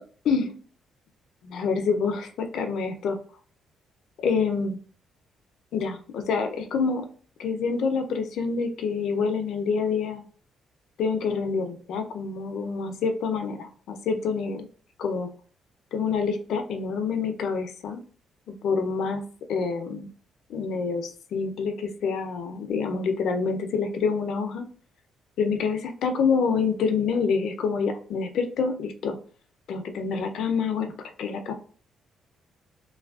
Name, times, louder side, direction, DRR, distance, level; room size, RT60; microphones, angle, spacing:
voice 1, 0.2-0.6 1.4-3.2 4.2-4.8 5.7-7.1 7.4-10.2 11.0-14.7 15.0-15.3 15.9-18.0 18.5-20.1 20.5-24.7 25.4-29.2 29.7-31.5, left 5 dB, 75° left, 6 dB, 0.4 m, -27 dB
3.2 x 2.2 x 2.3 m, 0.44 s
cardioid pair, 90°, 0 cm